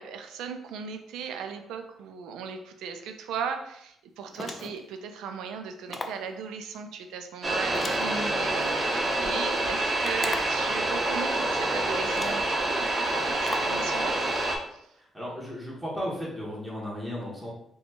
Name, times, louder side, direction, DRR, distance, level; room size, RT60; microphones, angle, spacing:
voice 1, 0.0-14.2 14.7-14.9, right 6 dB, 90° right, 6 dB, 0.4 m, -37 dB
sound 1, 4.3-4.9 5.9-6.3 7.8-8.7 10.0-10.7 11.6-11.7 12.1-12.5 13.4-13.8, left 2 dB, 30° left, 0.4 m, -38 dB
sound 2, 7.4-14.6, right 1 dB, 25° right, 0.8 m, -27 dB
voice 2, 14.9-17.5, equal, ahead, -7 dB, 1.2 m, -35 dB
4.1 x 2.3 x 2.9 m, 0.75 s
cardioid pair, 90°, 0 cm